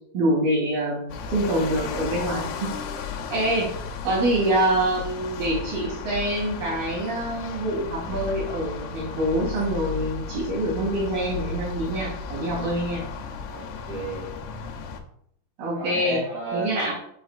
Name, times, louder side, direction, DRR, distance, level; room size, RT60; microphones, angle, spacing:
voice 1, 0.1-2.8 3.3-3.7 4.0-13.0 15.6-16.2 16.5-16.9, right 1 dB, 70° right, -4 dB, 4.4 m, -25 dB
sound 1, 1.1-15.0, left 5 dB, 80° left, 2.6 m, -34 dB
voice 2, 13.5-14.4 15.7-16.9, right 3 dB, 55° right, -4 dB, 3.0 m, -33 dB
7.8 x 5.1 x 2.4 m, 0.69 s
omnidirectional pair, 4.5 m